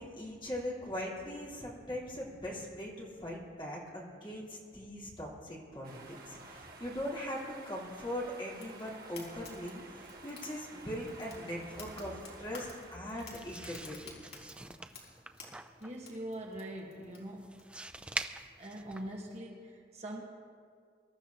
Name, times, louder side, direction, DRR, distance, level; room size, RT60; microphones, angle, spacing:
voice 1, 0.0-14.1, equal, 30° left, -6 dB, 3.7 m, -40 dB
sound 1, 5.8-13.0, right 3 dB, 55° right, 1.6 m, -52 dB
Fire, 8.6-17.6, left 4 dB, 75° left, 4.1 m, -53 dB
sound 2, 13.2-19.4, right 2 dB, 5° right, 0.4 m, -45 dB
voice 2, 15.8-17.7 18.0-18.1 18.6-20.2, right 1 dB, 40° right, -1 dB, 1.4 m, -43 dB
24.0 x 13.0 x 2.9 m, 2.2 s
head